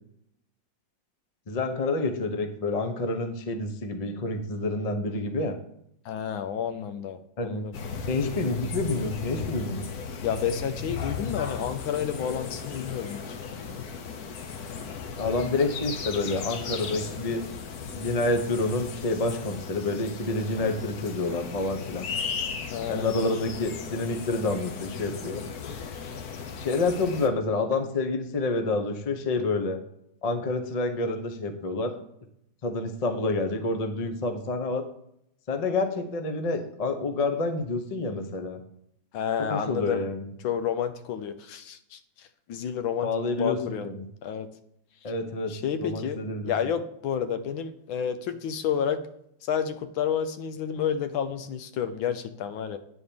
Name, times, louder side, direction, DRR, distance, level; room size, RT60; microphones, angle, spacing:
voice 1, 1.5-5.5 7.4-7.6 8.1-9.9 15.2-17.4 17.9-22.1 22.9-25.4 26.6-29.8 30.2-31.9 32.6-34.8 35.5-38.6 39.5-40.3 43.0-43.6 43.8-44.0 45.0-45.5 45.8-46.5, left 2 dB, 40° left, 6 dB, 0.5 m, -28 dB
voice 2, 6.0-7.8 10.2-13.4 22.7-23.2 39.1-40.1 40.4-42.0 42.5-43.1 43.4-43.9 44.2-44.5 45.5-46.2 46.4-49.0 49.4-52.8, left 8 dB, 85° left, 10 dB, 1.6 m, -30 dB
sound 1, 7.7-27.3, left 5 dB, 60° left, 1.2 m, -36 dB
9.5 x 4.4 x 7.0 m, 0.74 s
omnidirectional pair, 2.1 m